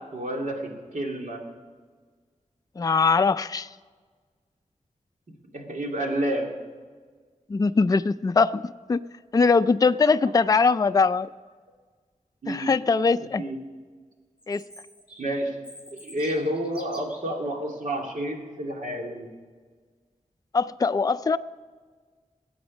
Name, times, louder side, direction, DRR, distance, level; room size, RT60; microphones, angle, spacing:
voice 1, 0.1-1.4 5.5-6.5 12.4-12.7 13.4-13.6 15.2-15.5 16.0-19.3, right 1 dB, 75° right, 1 dB, 2.6 m, -29 dB
voice 2, 2.8-3.7 7.5-9.0 9.3-11.3 12.5-13.4 14.5-14.6 20.5-21.4, left 4 dB, 25° left, 11 dB, 0.4 m, -21 dB
Chirp tweet, 14.4-17.4, equal, 10° right, 5.1 m, -48 dB
21.5 x 8.7 x 5.3 m, 1.5 s
wide cardioid pair, 85°, 13 cm